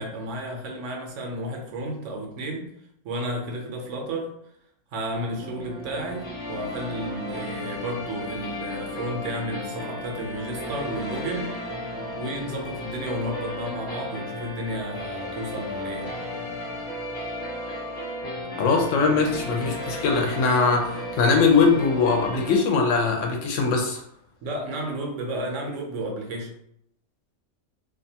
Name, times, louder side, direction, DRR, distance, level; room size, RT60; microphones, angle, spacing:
voice 1, 0.0-2.7 3.0-4.3 4.9-11.6 12.2-16.1 24.4-26.5, right 1 dB, 80° right, 1 dB, 1.0 m, -32 dB
sound 1, 5.1-22.6, left 1 dB, 35° left, 0.7 m, -34 dB
voice 2, 18.6-24.0, left 4 dB, 85° left, 2 dB, 1.0 m, -21 dB
2.7 x 2.3 x 2.7 m, 0.74 s
omnidirectional pair, 1.3 m